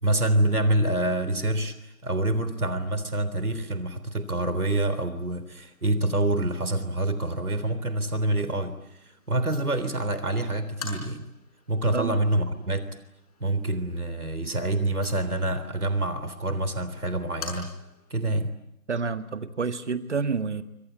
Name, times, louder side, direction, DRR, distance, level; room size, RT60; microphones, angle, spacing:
voice 1, 0.0-1.7 2.0-8.8 9.3-11.3 11.7-12.9 13.4-17.7 18.1-18.5, right 1 dB, 80° right, 12 dB, 3.7 m, -26 dB
sound 1, 5.1-18.2, left 5 dB, 25° left, 6.0 m, -48 dB
voice 2, 18.9-20.6, right 5 dB, 50° right, 11 dB, 1.9 m, -28 dB
28.0 x 24.5 x 8.7 m, 0.78 s
figure-of-eight pair, 160°, 44 cm